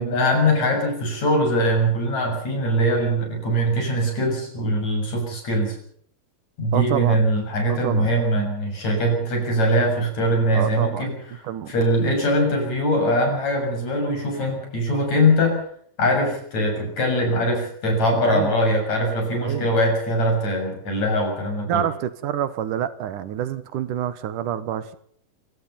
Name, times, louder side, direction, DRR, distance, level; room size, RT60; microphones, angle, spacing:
voice 1, 0.0-5.8 6.6-11.2 11.7-15.6 16.0-21.9, equal, 55° left, 3 dB, 8.3 m, -22 dB
voice 2, 6.7-7.2 7.7-8.1 10.5-11.1 11.4-11.7 18.2-18.6 19.4-19.7 21.7-25.0, right 10 dB, 75° right, 14 dB, 2.7 m, -27 dB
27.0 x 17.5 x 5.7 m, 0.64 s
omnidirectional pair, 3.7 m